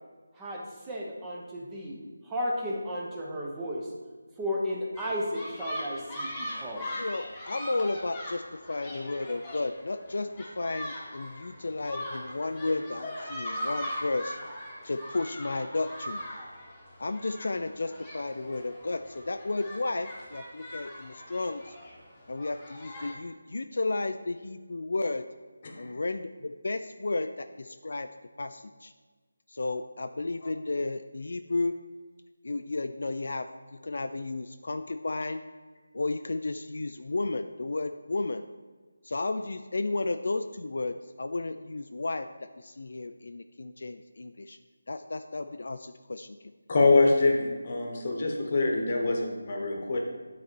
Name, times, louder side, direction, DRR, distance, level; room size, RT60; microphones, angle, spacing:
voice 1, 0.4-2.0 2.3-3.9 4.4-6.8, equal, 10° right, -3 dB, 0.7 m, -33 dB
sound 1, 4.9-23.1, equal, 10° left, 1.1 m, -40 dB
voice 2, 7.0-10.3 10.6-14.4 14.8-16.2 17.0-21.8 22.3-25.2 25.8-28.1 28.4-28.9 29.5-31.8 32.4-35.4 35.9-38.4 39.0-42.3 42.6-44.6 44.9-46.4, left 2 dB, 60° left, 8 dB, 0.3 m, -33 dB
voice 3, 46.7-50.0, left 3 dB, 35° left, 2 dB, 1.0 m, -24 dB
9.2 x 4.1 x 4.4 m, 1.4 s
figure-of-eight pair, 170°, 0 cm